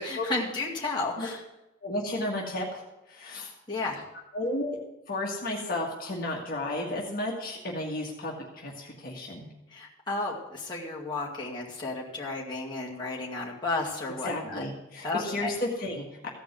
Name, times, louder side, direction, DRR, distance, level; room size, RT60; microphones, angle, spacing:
voice 1, 0.0-1.4 3.7-4.0 9.7-14.7 15.0-15.5, left 3 dB, 25° left, -4 dB, 2.1 m, -33 dB
voice 2, 1.8-2.8 3.1-3.5 4.3-4.8 5.1-9.5 14.2-16.3, left 1 dB, 50° left, -2 dB, 1.6 m, -33 dB
15.0 x 5.2 x 7.8 m, 0.95 s
head